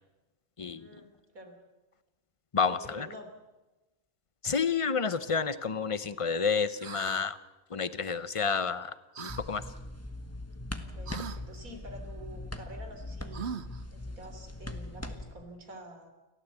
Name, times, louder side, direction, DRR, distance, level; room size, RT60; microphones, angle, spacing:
voice 1, 0.7-1.6 2.7-3.3 10.8-13.5 13.9-16.1, right 1 dB, 80° right, 5 dB, 3.7 m, -48 dB
voice 2, 2.5-3.1 4.4-7.4 7.7-8.9 9.2-9.6, left 5 dB, 30° left, 14 dB, 0.7 m, -29 dB
sound 1, 6.8-7.2 9.2-9.4 11.1-11.4 13.3-13.8, right 7 dB, 55° right, 1.1 m, -39 dB
sound 2, 9.3-15.3, left 1 dB, 10° left, 1.3 m, -41 dB
29.5 x 13.5 x 8.2 m, 1.1 s
omnidirectional pair, 1.4 m